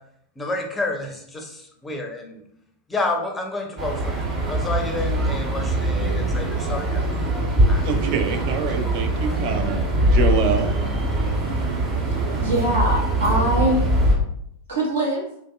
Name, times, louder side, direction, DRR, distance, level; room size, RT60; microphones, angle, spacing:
voice 1, 0.4-2.4 2.9-7.0 7.7-7.9, left 2 dB, 10° left, 3 dB, 0.5 m, -29 dB
sound 1, 3.8-14.2, right 1 dB, 30° right, 1.1 m, -22 dB
voice 2, 7.8-10.7, right 5 dB, 45° right, 5 dB, 0.4 m, -25 dB
voice 3, 12.1-13.9 14.7-15.2, right 1 dB, 65° right, -4 dB, 1.1 m, -23 dB
3.0 x 2.6 x 2.2 m, 0.70 s
figure-of-eight pair, 90°, 0 cm